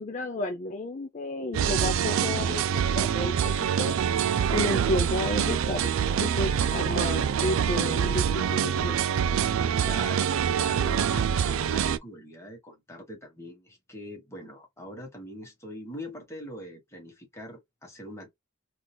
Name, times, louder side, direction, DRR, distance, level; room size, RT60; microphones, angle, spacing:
voice 1, 0.0-3.9 4.5-9.0, left 2 dB, 35° left, 0.4 m, -32 dB
sound 1, 1.5-12.0, right 8 dB, 80° right, 0.3 m, -25 dB
voice 2, 9.8-18.3, equal, 15° left, 1.3 m, -42 dB
3.8 x 2.4 x 2.2 m
head